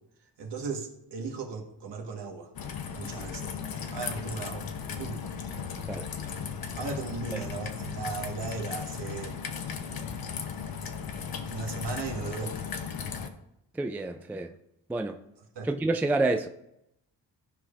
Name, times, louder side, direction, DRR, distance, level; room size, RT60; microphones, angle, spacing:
voice 1, 0.4-2.5 2.9-3.6 3.9-4.7 5.0-5.2 6.8-9.4 11.5-12.5 15.5-15.7, right 4 dB, 65° right, 1.5 m, -36 dB
Raindrop / Trickle dribble, 2.6-13.3, left 6 dB, 55° left, 0.9 m, -36 dB
voice 2, 13.7-14.5 14.9-15.2 15.6-16.5, right 2 dB, 5° right, 0.3 m, -28 dB
13.5 x 4.9 x 2.5 m
cardioid pair, 75°, 44 cm